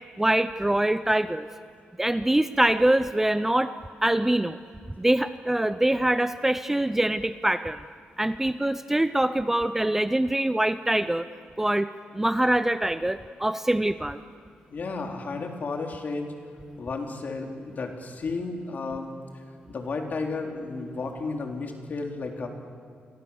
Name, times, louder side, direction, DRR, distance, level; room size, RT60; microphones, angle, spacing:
voice 1, 0.2-1.5 2.0-3.7 4.0-4.6 5.0-7.8 8.2-11.3 11.6-11.9 12.1-14.2, right 1 dB, 10° right, 12 dB, 0.6 m, -24 dB
voice 2, 14.7-16.3 16.8-19.1 19.3-19.4 19.7-22.5, left 3 dB, 50° left, 2 dB, 3.4 m, -33 dB
29.0 x 23.5 x 7.1 m, 2.2 s
wide cardioid pair, 135°, 4 cm